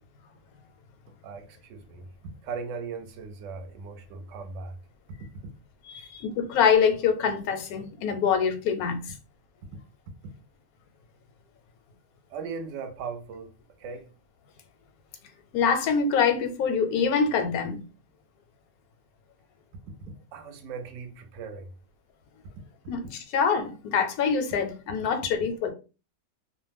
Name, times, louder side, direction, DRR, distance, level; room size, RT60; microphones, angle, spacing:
voice 1, 1.2-2.1 2.4-4.7 5.9-6.1 12.3-14.1 20.3-21.7, right 5 dB, 65° right, 0.9 m, -38 dB
voice 2, 5.9-9.1 15.5-17.8 22.9-25.7, left 6 dB, 85° left, 1.1 m, -25 dB
2.5 x 2.0 x 3.3 m
omnidirectional pair, 1.5 m